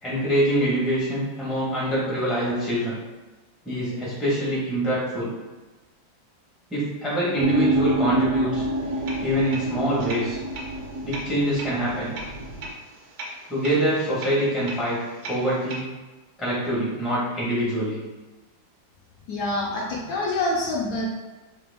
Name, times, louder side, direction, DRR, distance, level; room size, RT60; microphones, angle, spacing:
voice 1, 0.0-3.0 3.6-5.3 6.7-8.6 9.2-10.4 11.0-12.1 13.5-15.8 16.4-18.0, right 1 dB, ahead, -7 dB, 0.7 m, -25 dB
sound 1, 7.4-12.7, right 1 dB, 85° right, 1.4 m, -27 dB
sound 2, 8.7-15.8, right 1 dB, 70° right, 1.3 m, -40 dB
voice 2, 19.3-21.1, left 2 dB, 70° left, -3 dB, 1.0 m, -26 dB
3.3 x 2.9 x 3.4 m, 1.2 s
omnidirectional pair, 2.0 m